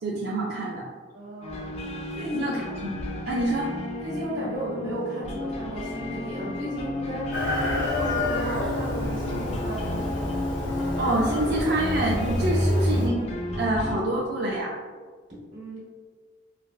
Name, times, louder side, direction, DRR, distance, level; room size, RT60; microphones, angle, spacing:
voice 1, 0.0-0.8 2.3-3.7 11.0-13.3 13.6-14.7, right 1 dB, 60° right, -5 dB, 0.4 m, -26 dB
voice 2, 1.1-2.6 4.0-10.2 15.3-15.8, equal, 85° right, -8 dB, 1.5 m, -34 dB
sound 1, 1.4-14.0, left 1 dB, 35° left, 0.3 m, -31 dB
Chicken rooster, 7.3-13.1, left 1 dB, 85° left, 0.6 m, -30 dB
3.9 x 2.2 x 2.3 m, 1.5 s
head